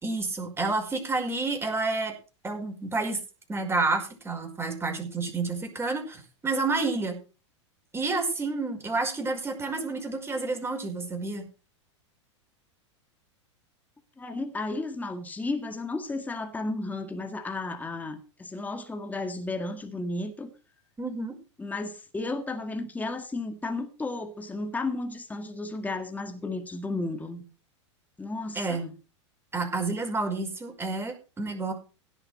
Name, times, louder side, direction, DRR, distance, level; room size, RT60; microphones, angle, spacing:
voice 1, 0.0-2.2 2.4-3.2 3.5-7.2 7.9-11.5 21.0-21.4 28.6-28.9 29.5-31.7, right 3 dB, 15° right, 5.3 m, -29 dB
voice 2, 14.2-20.5 21.6-27.4 28.2-28.9, left 2 dB, 10° left, 2.0 m, -33 dB
17.0 x 6.6 x 6.4 m
hypercardioid pair, 95°, 15 cm